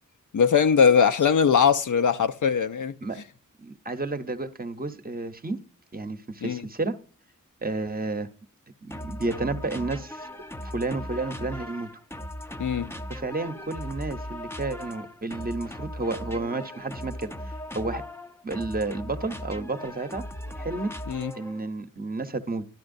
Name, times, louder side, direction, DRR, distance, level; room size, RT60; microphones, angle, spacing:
voice 1, 0.3-2.9 6.4-6.6 12.6-12.9 21.1-21.3, left 6 dB, 70° left, 0.6 m, -21 dB
voice 2, 3.6-5.6 5.9-7.0 7.6-8.3 8.8-10.3 10.6-11.9 13.1-18.0 18.4-20.2 20.6-20.9 21.4-22.7, right 3 dB, 30° right, 0.7 m, -31 dB
sound 1, 8.9-21.7, left 1 dB, 10° left, 0.5 m, -38 dB
12.0 x 11.0 x 2.6 m
wide cardioid pair, 85°, 32 cm